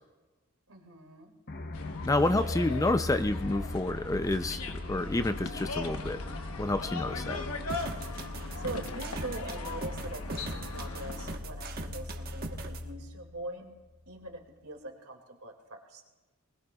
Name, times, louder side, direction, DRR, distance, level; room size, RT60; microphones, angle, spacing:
voice 1, 0.7-1.3 8.6-13.7 14.1-16.0, right 2 dB, 75° right, 3 dB, 2.2 m, -42 dB
sound 1, 1.5-14.2, left 2 dB, 45° left, 0.7 m, -40 dB
sound 2, 1.7-11.4, left 3 dB, 75° left, 1.1 m, -39 dB
voice 2, 2.1-4.6 4.9-6.2 6.6-7.4, left 2 dB, 15° left, 10 dB, 0.4 m, -28 dB
sound 3, 7.7-12.8, right 3 dB, 45° right, 1.1 m, -40 dB
22.5 x 20.0 x 2.3 m, 1.2 s
head